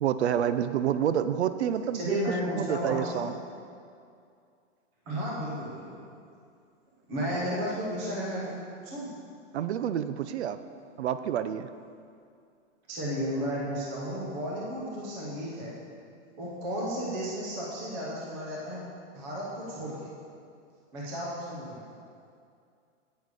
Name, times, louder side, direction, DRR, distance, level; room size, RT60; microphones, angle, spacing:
voice 1, 0.0-2.2 2.5-3.4 9.5-10.6 11.0-11.7, right 9 dB, 65° right, 12 dB, 0.5 m, -28 dB
voice 2, 1.9-3.2 5.1-5.8 7.1-9.1 12.9-15.8 16.4-18.9 19.1-20.1 20.9-21.8, equal, 5° right, -5 dB, 0.4 m, -33 dB
8.8 x 8.4 x 4.8 m, 2.4 s
hypercardioid pair, 170°, 37 cm